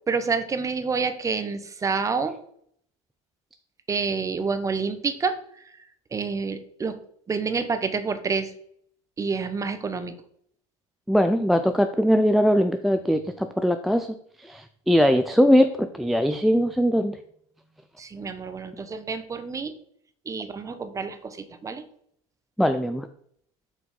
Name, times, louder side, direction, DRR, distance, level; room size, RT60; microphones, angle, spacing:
voice 1, 0.1-2.4 3.9-5.7 6.1-7.0 7.3-8.5 9.2-10.2 18.0-19.7 20.2-21.8, right 5 dB, 20° right, 10 dB, 0.8 m, -28 dB
voice 2, 11.1-14.1 14.4-17.2 22.6-23.1, equal, ahead, 8 dB, 0.3 m, -21 dB
6.2 x 4.6 x 5.2 m, 0.66 s
supercardioid pair, 115°, 17 cm